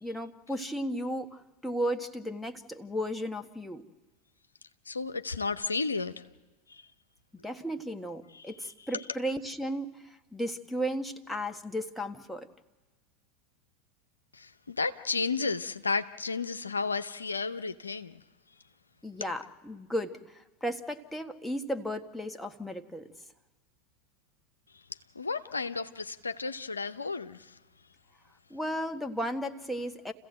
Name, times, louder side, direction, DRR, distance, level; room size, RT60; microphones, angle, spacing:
voice 1, 0.0-3.8 7.4-12.5 19.0-23.1 28.5-30.1, equal, 5° left, 1.5 m, -35 dB
voice 2, 4.9-6.2 6.7-6.9 8.3-8.5 8.9-9.0 14.3-18.2 24.7-24.8 25.1-27.6, left 4 dB, 90° left, 0.7 m, -33 dB
29.0 x 15.5 x 7.8 m
hypercardioid pair, 85°, 0 cm